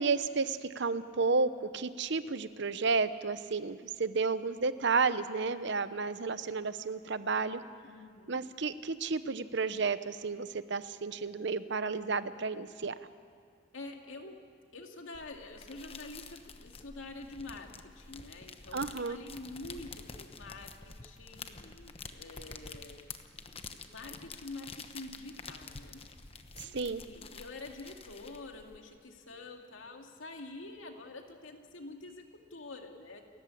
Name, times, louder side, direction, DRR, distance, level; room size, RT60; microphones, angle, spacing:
voice 1, 0.0-7.6 8.3-12.9 18.7-19.2 26.6-27.0, right 4 dB, 60° right, 13 dB, 0.8 m, -32 dB
voice 2, 7.8-8.4 13.7-14.4 14.7-23.0 23.5-26.0 26.6-32.2 32.5-33.2, left 2 dB, 80° left, 3 dB, 2.3 m, -47 dB
sound 1, 15.1-28.8, left 4 dB, 30° left, 1.0 m, -48 dB
29.5 x 14.5 x 8.6 m, 2.1 s
head